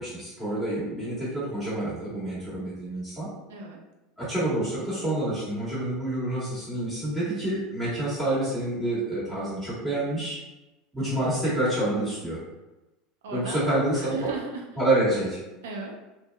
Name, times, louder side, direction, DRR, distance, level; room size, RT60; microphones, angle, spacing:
voice 1, 0.0-3.3 4.2-10.4 10.9-12.4 13.3-14.3 14.8-15.4, right 1 dB, 10° right, -11 dB, 1.4 m, -28 dB
voice 2, 3.5-3.8 11.0-11.2 13.2-14.7 15.6-15.9, right 3 dB, 75° right, 0 dB, 0.5 m, -37 dB
2.6 x 2.2 x 2.2 m, 1.0 s
hypercardioid pair, 80°, 0 cm